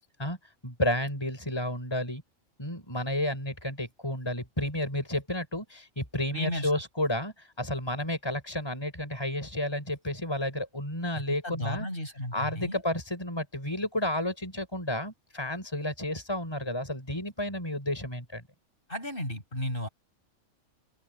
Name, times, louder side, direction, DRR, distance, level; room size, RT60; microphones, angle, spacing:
voice 1, 0.6-2.2 2.6-11.9 12.3-18.4, left 1 dB, 20° left, 5.8 m, -31 dB
voice 2, 6.3-6.7 11.4-12.8 18.9-19.9, left 1 dB, 45° left, 8.0 m, -34 dB
open air
omnidirectional pair, 1.3 m